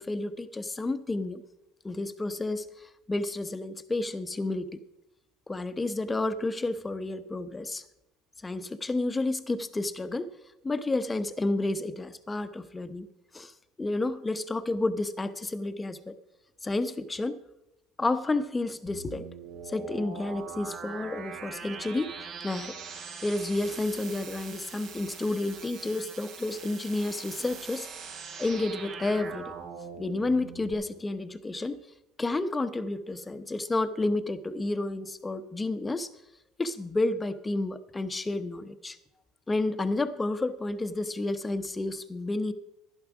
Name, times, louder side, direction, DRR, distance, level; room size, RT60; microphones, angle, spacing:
voice 1, 0.0-1.4 1.8-4.8 5.5-7.8 8.4-10.3 10.6-13.1 13.3-13.5 13.8-16.2 16.6-17.4 18.0-19.3 19.7-22.1 22.4-22.8 23.2-27.9 28.4-29.5 30.0-31.8 32.2-36.1 36.6-39.0 39.5-42.5, left 2 dB, 15° left, 11 dB, 0.9 m, -30 dB
sound 1, 18.9-30.7, right 5 dB, 65° right, 3.1 m, -42 dB
11.5 x 11.5 x 4.9 m, 0.90 s
supercardioid pair, 90°, 0 cm